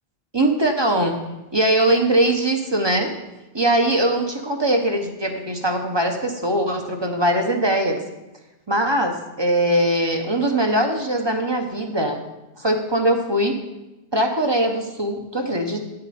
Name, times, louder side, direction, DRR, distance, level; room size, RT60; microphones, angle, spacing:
voice 1, 0.3-1.2 1.5-3.1 3.5-8.0 8.7-12.2 12.6-13.6 14.1-15.8, right 1 dB, 30° right, 3 dB, 0.8 m, -21 dB
9.5 x 7.7 x 4.2 m, 1.0 s
omnidirectional pair, 1.0 m